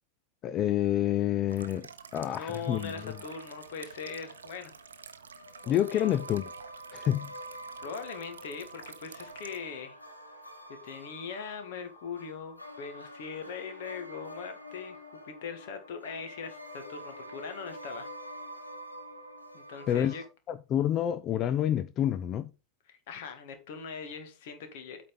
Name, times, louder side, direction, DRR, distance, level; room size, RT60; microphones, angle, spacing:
voice 1, 0.4-3.1 5.7-6.4 6.9-7.3 19.9-20.1 20.5-22.5, left 11 dB, 30° left, 0.5 m, -28 dB
sound 1, 1.5-9.6, right 6 dB, 70° right, 0.7 m, -50 dB
voice 2, 2.4-4.7 5.6-6.2 7.8-10.0 10.8-15.0 15.4-18.1 19.5-20.2 22.9-25.0, left 6 dB, 50° left, 1.9 m, -41 dB
sound 2, 2.9-20.3, equal, 90° left, 1.5 m, -47 dB
8.5 x 4.3 x 5.4 m
figure-of-eight pair, 90°, 0 cm